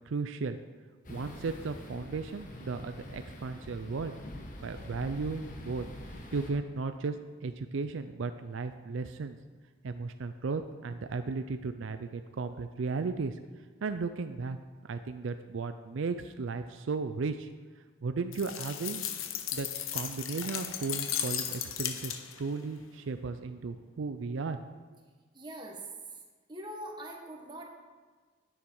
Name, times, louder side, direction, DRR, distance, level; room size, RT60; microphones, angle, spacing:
voice 1, 0.1-0.6 1.1-4.2 4.6-5.9 6.3-7.2 7.4-9.4 9.8-13.4 13.8-14.6 14.8-17.5 18.0-19.0 19.5-19.7 19.9-24.6, right 4 dB, 70° right, 9 dB, 0.4 m, -35 dB
sound 1, 1.0-6.5, left 1 dB, 40° left, 1.4 m, -45 dB
sound 2, 18.3-22.5, left 10 dB, 90° left, 0.9 m, -35 dB
voice 2, 25.3-25.8 26.5-27.7, right 1 dB, 20° right, 0 dB, 1.4 m, -42 dB
10.0 x 9.2 x 4.7 m, 1.4 s
head